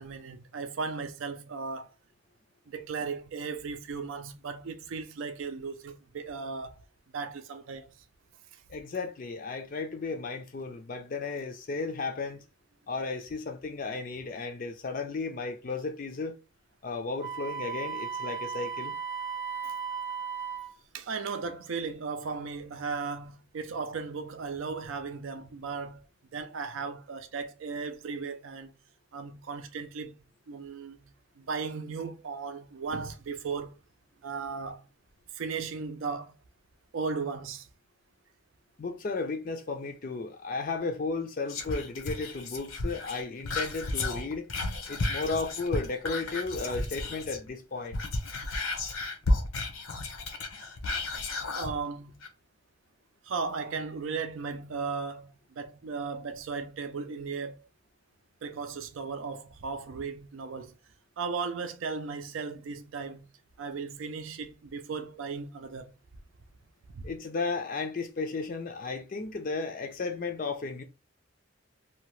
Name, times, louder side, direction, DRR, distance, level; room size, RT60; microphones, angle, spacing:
voice 1, 0.0-1.9 2.7-6.7 7.1-7.9 19.6-19.7 20.9-26.0 26.3-28.7 29.1-30.1 30.5-31.0 31.4-33.7 34.2-34.8 35.3-36.3 36.9-37.7 51.5-52.2 53.2-57.6 58.4-60.7 61.2-63.3 63.6-65.9 66.9-67.1, right 5 dB, 75° right, 0.4 m, -36 dB
voice 2, 8.7-12.4 12.9-16.4 16.8-18.9 38.8-44.5 44.9-48.0 67.0-70.8, left 3 dB, 40° left, 0.4 m, -34 dB
Wind instrument woodwind instrument, 17.2-20.8, right 6 dB, 15° right, 0.7 m, -36 dB
Whispering, 41.5-47.5 47.8-51.7 52.2-52.3, left 2 dB, 90° left, 0.7 m, -33 dB
2.8 x 2.2 x 3.0 m
head